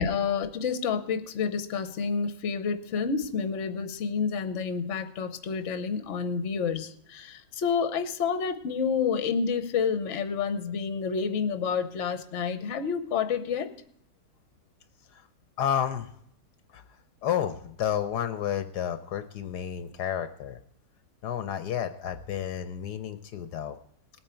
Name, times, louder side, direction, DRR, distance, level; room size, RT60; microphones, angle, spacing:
voice 1, 0.0-13.7, left 6 dB, 50° left, 10 dB, 1.1 m, -29 dB
voice 2, 15.6-16.1 16.7-20.6 21.2-23.8, left 9 dB, 75° left, 9 dB, 1.2 m, -31 dB
19.5 x 8.9 x 4.4 m, 0.68 s
omnidirectional pair, 1.9 m